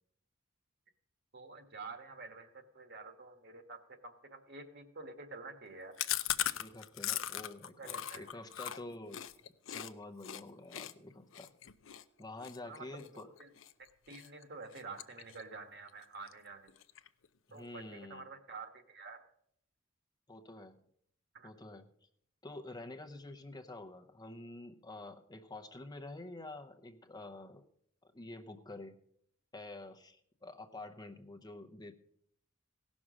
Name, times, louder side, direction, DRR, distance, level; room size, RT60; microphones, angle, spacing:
voice 1, 1.3-6.0 7.8-8.3 12.6-13.5 13.8-16.7 17.5-19.3 21.3-21.5, right 3 dB, 55° right, 7 dB, 1.4 m, -49 dB
Chewing mastication, 6.0-9.9 10.2-10.4 10.7-13.7 14.1-14.4 14.7-15.6 15.9-16.0 16.3-16.4 16.7-17.3, left 12 dB, 65° left, 0.6 m, -39 dB
voice 2, 6.6-9.2 9.7-11.5 12.2-13.3 17.5-18.2 20.3-20.8 21.4-21.8 22.4-27.6 28.0-29.0 29.5-31.9, left 2 dB, 20° left, 6 dB, 0.7 m, -48 dB
17.0 x 6.2 x 6.3 m, 0.68 s
head